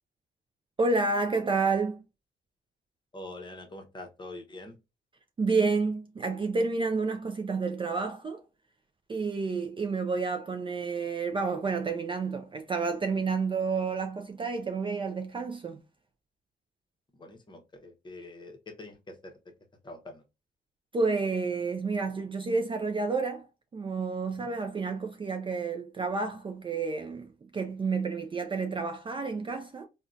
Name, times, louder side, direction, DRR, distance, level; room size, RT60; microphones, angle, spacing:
voice 1, 0.8-2.0 5.4-8.4 9.1-15.8 20.9-23.5 23.7-29.8, right 4 dB, 25° right, 0.4 m, -30 dB
voice 2, 3.1-4.7 17.1-19.3 19.8-20.2 24.4-24.5, left 2 dB, 25° left, 0.8 m, -45 dB
3.6 x 2.2 x 2.4 m
cardioid pair, 90°, 20 cm